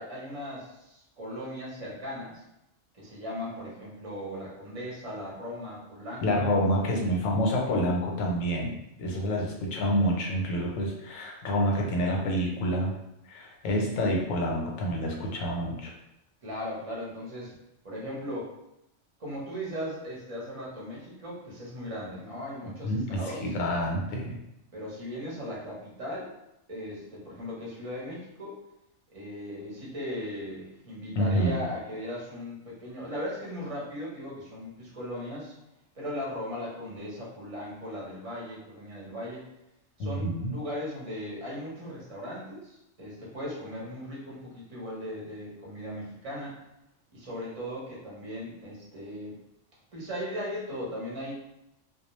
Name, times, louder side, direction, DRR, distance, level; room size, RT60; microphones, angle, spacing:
voice 1, 0.0-2.4 2.9-6.4 16.4-17.5 17.8-18.5 19.2-23.4 24.7-26.3 26.7-28.5 29.1-35.5 35.9-39.4 40.0-46.6 47.1-49.4 49.9-51.3, equal, 30° right, -6 dB, 0.8 m, -38 dB
voice 2, 6.2-12.9 13.3-15.9 22.8-24.4 31.2-31.6 40.0-40.5, equal, 90° left, 0 dB, 1.0 m, -28 dB
2.2 x 2.2 x 3.0 m, 0.84 s
omnidirectional pair, 1.3 m